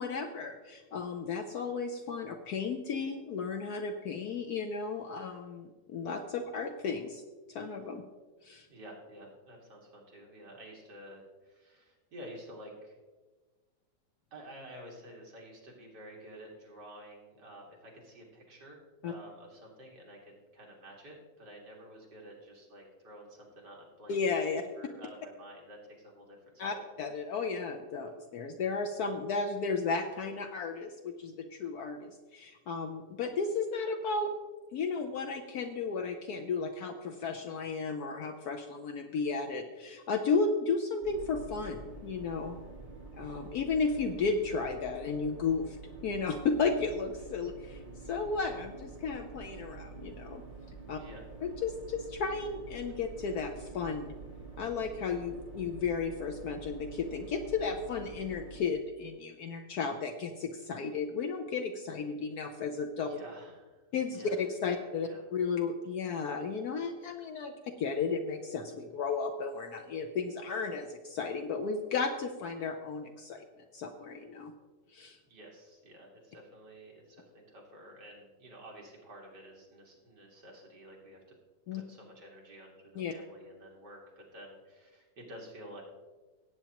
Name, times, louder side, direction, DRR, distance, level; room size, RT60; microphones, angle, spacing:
voice 1, 0.0-7.2 7.5-8.0 8.4-8.7 19.0-19.1 24.1-24.6 26.6-34.3 34.7-42.6 43.1-45.8 46.0-50.4 50.9-51.0 51.4-54.1 54.6-63.2 63.9-67.5 67.8-73.4 73.7-74.5 74.9-75.2 81.7-81.8 82.9-83.1, left 4 dB, 65° left, 5 dB, 1.1 m, -34 dB
voice 2, 8.7-13.0 14.3-24.1 24.8-26.9 51.0-51.3 63.0-63.8 64.1-65.2 75.3-81.2 81.7-85.8, equal, 70° right, -2 dB, 2.5 m, -51 dB
sound 1, 41.0-58.6, right 4 dB, 20° right, 2.6 m, -47 dB
17.0 x 8.4 x 2.9 m, 1.3 s
omnidirectional pair, 1.9 m